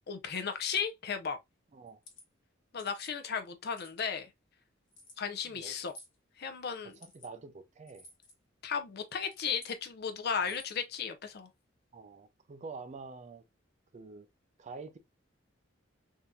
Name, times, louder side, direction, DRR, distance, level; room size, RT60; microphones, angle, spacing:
voice 1, 0.1-1.4 2.7-4.3 5.2-5.9 6.4-7.0 8.6-11.5, left 6 dB, 55° left, 0.6 m, -35 dB
sound 1, 1.9-2.2 2.8-3.1 3.6-4.2 4.9-5.2 5.9-6.2 6.9-7.3 7.9-8.3 9.1-9.8 10.4-10.8, left 2 dB, 75° left, 1.1 m, -54 dB
voice 2, 7.0-8.1 11.9-13.4 13.9-14.3 14.6-15.0, right 4 dB, 35° right, 0.4 m, -47 dB
3.6 x 2.7 x 2.2 m
head